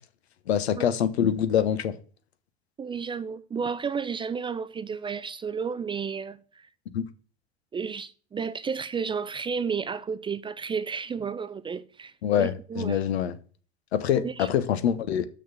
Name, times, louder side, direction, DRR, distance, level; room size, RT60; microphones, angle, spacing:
voice 1, 0.5-1.9 6.9-7.1 12.2-13.3 13.9-15.3, left 9 dB, 80° left, 1.0 m, -25 dB
voice 2, 2.8-6.7 7.7-13.0 14.2-14.5, right 6 dB, 15° right, 0.3 m, -32 dB
6.2 x 6.2 x 7.3 m
hypercardioid pair, 85°, 32 cm